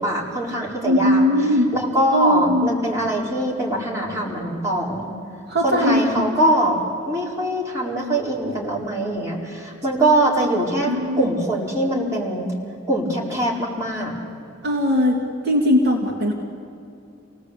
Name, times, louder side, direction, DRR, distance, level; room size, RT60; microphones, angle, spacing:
voice 1, 0.0-1.2 1.7-5.1 5.6-6.8 7.1-12.5 12.9-14.1, right 1 dB, 15° right, -4 dB, 4.4 m, -22 dB
voice 2, 0.8-1.7 2.1-2.7 5.5-6.4 10.8-11.3 14.6-16.3, left 1 dB, 55° right, 0 dB, 2.7 m, -19 dB
28.0 x 18.5 x 8.3 m, 2.6 s
head